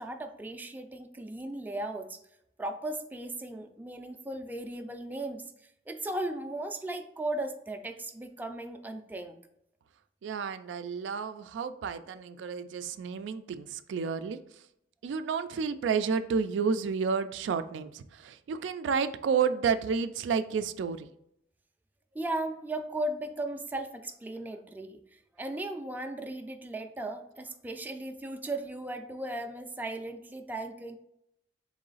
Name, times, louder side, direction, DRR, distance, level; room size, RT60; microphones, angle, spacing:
voice 1, 0.0-2.2 2.6-5.4 5.9-9.4 22.1-31.0, right 1 dB, 10° right, 5 dB, 0.3 m, -36 dB
voice 2, 10.2-14.4 15.0-21.1, right 6 dB, 90° right, 11 dB, 0.3 m, -31 dB
3.8 x 3.1 x 3.9 m, 0.77 s
head